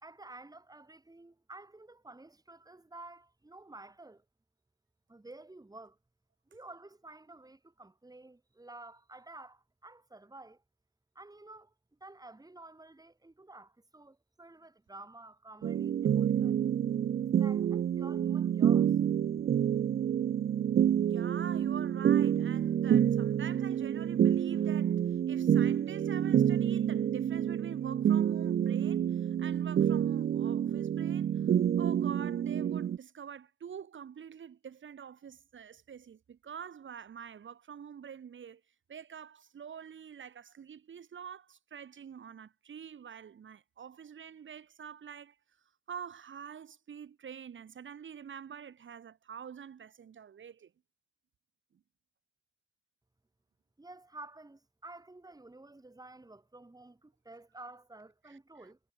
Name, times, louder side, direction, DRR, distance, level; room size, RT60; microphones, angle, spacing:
voice 1, 0.0-4.2 5.1-6.0 6.5-10.6 11.1-11.7 12.0-16.6 17.3-18.9 19.4-19.5 53.8-58.8, right 2 dB, 20° right, 2.4 m, -51 dB
sound 1, 15.6-33.0, right 9 dB, 50° right, 0.4 m, -28 dB
voice 2, 21.1-31.5 31.8-38.6 38.9-45.4 45.9-50.7 58.3-58.7, right 8 dB, 70° right, 3.2 m, -46 dB
supercardioid pair, 50°, 21 cm